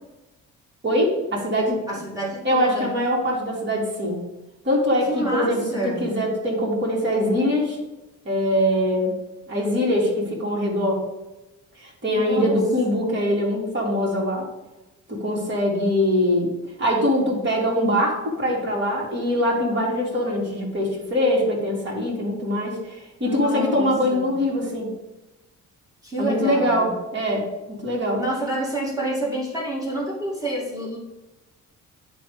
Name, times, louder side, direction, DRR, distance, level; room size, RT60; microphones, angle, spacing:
voice 1, 0.8-1.8 2.4-4.2 4.6-7.8 8.2-9.1 9.5-11.0 11.8-14.5 15.1-16.5 16.8-24.9 26.2-28.2, equal, 35° right, -4 dB, 2.9 m, -23 dB
voice 2, 1.9-2.9 5.1-6.1 12.1-12.6 12.9-13.1 23.2-24.4 26.0-27.0 28.1-31.0, right 1 dB, 10° right, -4 dB, 2.3 m, -29 dB
10.0 x 3.5 x 5.0 m, 1.0 s
cardioid pair, 90°, 30 cm